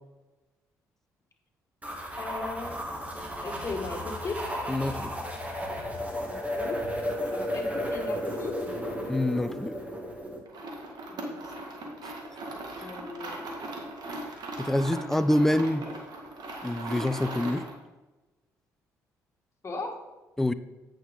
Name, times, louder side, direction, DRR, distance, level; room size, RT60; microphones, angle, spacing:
sound 1, 1.8-10.4, equal, 15° right, 2.3 m, -33 dB
voice 1, 2.2-2.8 3.4-4.4 6.2-6.8 7.3-8.6 11.1-11.5 11.8-12.1 12.8-13.5 19.6-20.0, left 3 dB, 35° left, 2 dB, 2.1 m, -37 dB
voice 2, 4.7-5.1 9.1-9.8 12.0-12.1 14.6-15.9 16.6-17.6 20.4-20.5, left 1 dB, 5° left, 13 dB, 0.5 m, -26 dB
sound 2, 10.5-17.8, right 1 dB, 60° right, 1.8 m, -38 dB
8.8 x 6.2 x 3.8 m, 1.1 s
hypercardioid pair, 55°, 8 cm